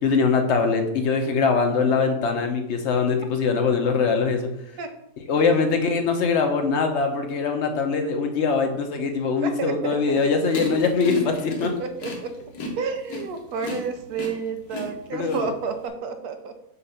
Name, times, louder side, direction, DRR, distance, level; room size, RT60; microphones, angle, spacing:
voice 1, 0.0-4.5 5.3-11.7 15.1-15.5, left 5 dB, 55° left, 5 dB, 0.9 m, -22 dB
voice 2, 9.4-10.2 11.4-12.3 12.8-16.6, right 5 dB, 80° right, 7 dB, 1.2 m, -31 dB
sound 1, 10.5-15.9, left 2 dB, 75° left, 1.6 m, -33 dB
6.8 x 2.5 x 5.5 m, 0.81 s
omnidirectional pair, 1.7 m